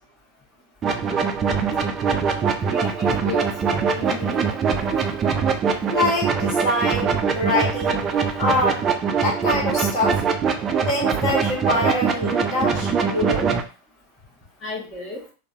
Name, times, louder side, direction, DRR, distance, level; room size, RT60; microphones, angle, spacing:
sound 1, 0.8-13.6, right 5 dB, 25° right, 0.4 m, -23 dB
voice 1, 2.6-4.6 14.6-15.2, left 2 dB, 15° left, -7 dB, 1.0 m, -34 dB
voice 2, 5.9-8.1 8.4-8.8 9.2-10.2 10.9-13.5, left 1 dB, 35° left, -3 dB, 1.3 m, -24 dB
3.7 x 2.1 x 2.6 m, 0.35 s
figure-of-eight pair, 90°, 0 cm